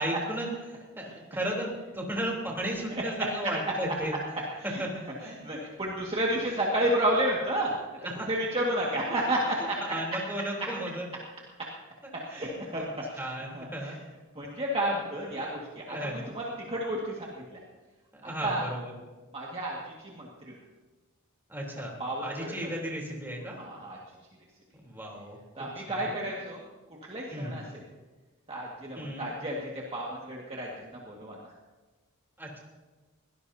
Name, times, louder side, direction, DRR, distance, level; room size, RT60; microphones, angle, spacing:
voice 1, 0.0-4.2 4.8-4.9 5.2-5.3 8.0-8.1 9.9-11.1 12.3-12.9 13.2-14.0 15.9-16.3 18.1-18.9 21.5-21.9 22.2-23.6 24.8-26.2 27.3-27.5 28.9-29.3 32.4-32.6, right 1 dB, 10° right, -2 dB, 3.4 m, -35 dB
voice 2, 5.3-7.8 8.3-9.8 12.1-12.9 13.1-13.2 13.5-14.0 14.4-17.6 18.2-18.6 19.3-20.5 22.0-22.5 23.6-24.0 25.6-26.6 27.1-27.8 28.5-31.5, right 1 dB, 25° right, -3 dB, 1.9 m, -31 dB
23.0 x 17.5 x 2.8 m, 1.3 s
head